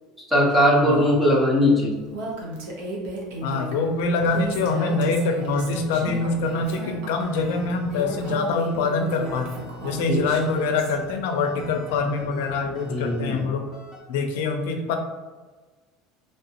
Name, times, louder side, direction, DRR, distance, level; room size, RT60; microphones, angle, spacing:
voice 1, 0.3-2.0 10.1-10.2 12.9-13.4, equal, 5° right, -4 dB, 0.6 m, -19 dB
Female speech woman speaking, 2.1-10.9, right 1 dB, 75° right, 0.8 m, -34 dB
voice 2, 3.4-9.5 9.8-13.7 14.1-15.0, left 4 dB, 80° left, 4 dB, 0.5 m, -24 dB
sound 1, 4.1-13.5 13.7-14.0, left 2 dB, 35° right, 1.2 m, -43 dB
3.3 x 2.5 x 2.8 m, 1.3 s
cardioid pair, 175°, 0 cm